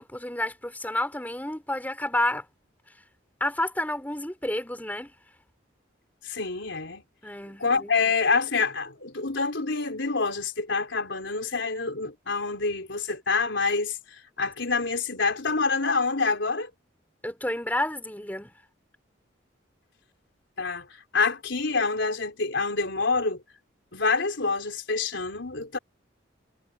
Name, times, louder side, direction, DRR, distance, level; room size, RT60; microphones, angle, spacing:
voice 1, 0.0-2.5 3.4-5.1 7.2-8.1 17.2-18.5, left 1 dB, 10° left, 4.9 m, -30 dB
voice 2, 6.2-7.0 7.6-16.7 20.6-23.4 23.9-25.8, left 4 dB, 75° left, 3.8 m, -27 dB
head